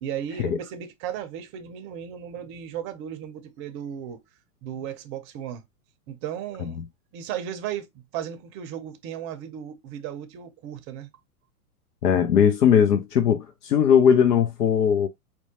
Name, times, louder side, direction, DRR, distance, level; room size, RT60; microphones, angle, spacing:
voice 1, 0.0-4.2 4.6-5.6 6.1-6.8 7.1-7.9 8.1-11.1, right 9 dB, 30° right, 0.5 m, -35 dB
voice 2, 12.0-15.1, left 8 dB, 85° left, 0.7 m, -19 dB
4.3 x 2.2 x 2.8 m
hypercardioid pair, 120°, 46 cm